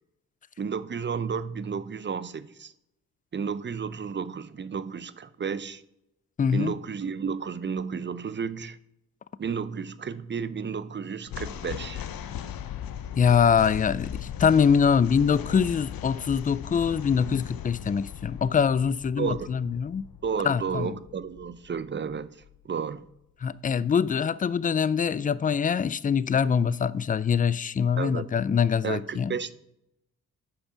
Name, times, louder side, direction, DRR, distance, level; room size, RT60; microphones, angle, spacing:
voice 1, 0.6-2.7 3.3-5.8 6.5-8.8 9.4-12.1 19.2-19.5 20.2-22.4 22.6-23.1 28.0-28.3 28.8-29.5, right 6 dB, 30° right, 0.6 m, -32 dB
voice 2, 6.4-6.7 13.2-20.1 20.4-21.0 23.4-29.3, left 7 dB, 25° left, 0.3 m, -24 dB
sound 1, 11.3-22.6, left 10 dB, 60° left, 0.7 m, -38 dB
8.3 x 5.5 x 5.7 m
supercardioid pair, 55°, 39 cm